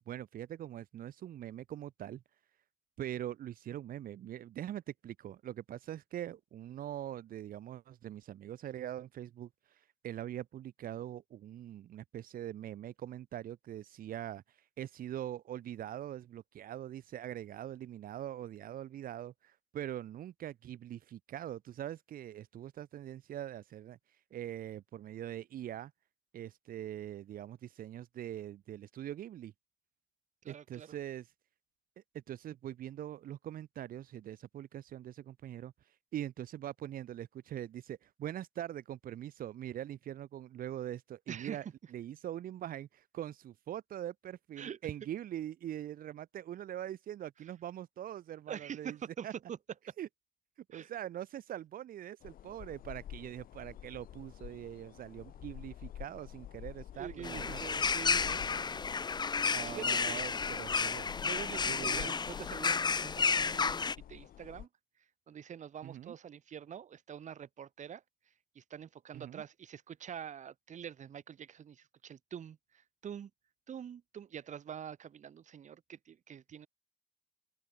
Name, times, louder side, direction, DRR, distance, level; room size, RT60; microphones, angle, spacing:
voice 1, 0.0-2.2 3.0-25.9 26.3-29.5 30.5-31.3 32.1-41.6 41.9-49.0 49.2-49.3 50.0-50.1 50.7-57.8 59.5-61.3 61.7-62.1 65.8-66.1 69.1-69.4, right 11 dB, 85° right, 1.3 m, -43 dB
voice 2, 30.4-31.0 41.3-41.6 44.6-44.9 48.5-49.6 50.7-50.9 56.9-60.3 61.2-64.7 65.3-68.0 68.6-73.3 73.7-76.7, right 8 dB, 60° right, 2.0 m, -46 dB
sound 1, 52.2-64.7, left 11 dB, 85° left, 2.0 m, -49 dB
sound 2, 57.2-64.0, left 5 dB, 30° left, 0.8 m, -32 dB
open air
cardioid pair, 125°, 14 cm